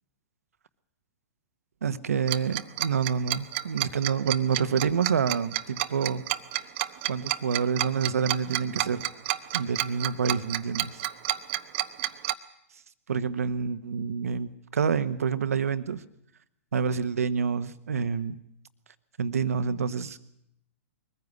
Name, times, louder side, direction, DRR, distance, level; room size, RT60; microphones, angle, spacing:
voice 1, 1.8-6.2 7.1-9.0 9.5-11.0 13.1-16.0 16.7-18.3 19.2-20.2, right 6 dB, 80° right, 12 dB, 1.3 m, -28 dB
Tick-tock, 2.3-12.3, right 16 dB, 45° right, 1.0 m, -29 dB
22.0 x 15.0 x 9.7 m, 0.76 s
hypercardioid pair, 115°, 8 cm